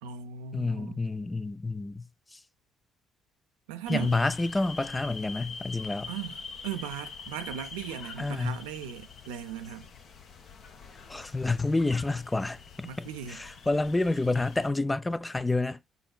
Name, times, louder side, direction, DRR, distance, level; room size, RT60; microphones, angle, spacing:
voice 1, 0.0-1.0 3.7-4.1 6.1-9.9 12.8-13.4, right 9 dB, 85° right, 0.6 m, -38 dB
voice 2, 0.5-2.4 3.9-6.1 8.2-8.6 11.1-15.8, left 2 dB, 15° left, 0.5 m, -29 dB
sound 1, 3.9-14.7, left 5 dB, 60° left, 1.1 m, -45 dB
5.7 x 4.1 x 2.3 m
hypercardioid pair, 55°, 0 cm